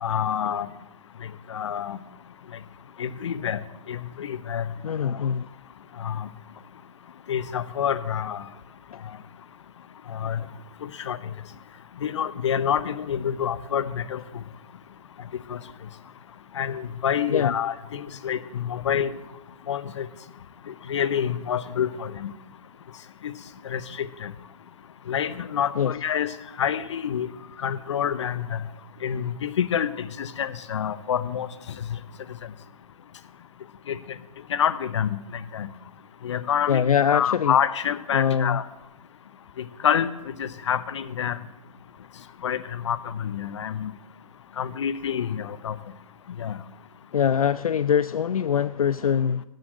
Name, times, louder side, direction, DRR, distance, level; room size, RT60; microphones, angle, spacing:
voice 1, 0.0-0.7 1.5-2.0 3.0-3.6 3.9-4.7 6.0-6.3 7.3-8.4 10.1-10.4 11.0-11.2 12.0-14.2 15.5-15.6 16.6-19.1 19.7-20.1 20.9-22.3 23.6-24.3 25.1-26.3 26.6-27.3 27.6-28.6 29.0-31.5 33.9-34.0 34.5-35.1 35.5-35.7 36.2-36.8 37.1-38.6 39.6-40.1 40.4-41.4 42.4-43.9 44.6-45.7 46.4-46.6, left 8 dB, 50° left, 0.7 m, -27 dB
voice 2, 4.8-5.5 17.3-17.5 25.8-25.9 36.7-37.6 38.1-38.6 47.1-49.4, left 8 dB, 70° left, 0.4 m, -23 dB
10.5 x 7.6 x 7.6 m
figure-of-eight pair, 140°, 19 cm